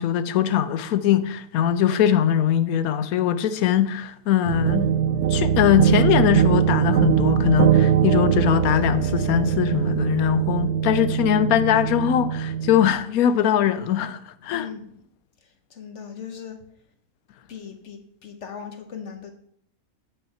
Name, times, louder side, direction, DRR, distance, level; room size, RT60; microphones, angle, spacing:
voice 1, 0.0-4.9 5.3-14.7, left 10 dB, 85° left, 1.1 m, -21 dB
sound 1, 4.4-12.9, right 8 dB, 65° right, 0.7 m, -21 dB
voice 2, 14.5-14.9 15.4-16.6 17.5-19.3, left 7 dB, 60° left, 1.1 m, -39 dB
9.0 x 5.6 x 4.5 m
omnidirectional pair, 1.5 m